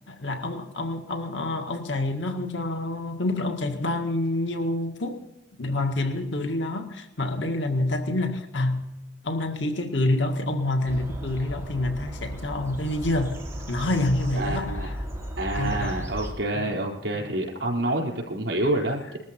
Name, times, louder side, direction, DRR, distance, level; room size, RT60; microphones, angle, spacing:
voice 1, 0.1-5.2 5.6-8.9 9.2-13.4 13.7-14.9 15.5-16.0 16.5-16.8 17.1-17.3, left 2 dB, 85° left, 5 dB, 1.9 m, -27 dB
sound 1, 10.9-16.3, equal, 15° right, 3.8 m, -35 dB
voice 2, 14.3-14.9 15.4-19.2, right 1 dB, 75° right, -1 dB, 4.5 m, -28 dB
20.5 x 13.5 x 4.5 m, 0.94 s
head